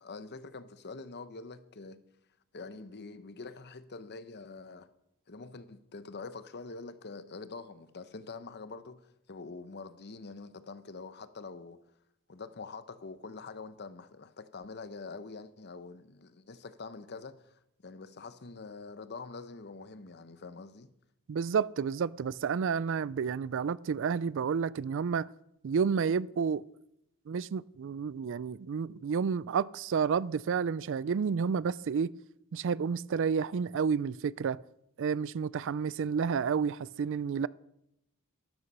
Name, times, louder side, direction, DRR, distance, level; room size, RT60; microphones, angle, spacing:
voice 1, 0.0-2.0 2.5-4.9 5.3-9.0 9.3-11.8 12.3-20.9, left 4 dB, 50° left, 0.9 m, -45 dB
voice 2, 21.3-25.3 25.6-26.6 27.3-32.1 32.5-34.6 35.0-37.5, right 6 dB, 60° right, 0.4 m, -30 dB
13.0 x 12.5 x 5.5 m
head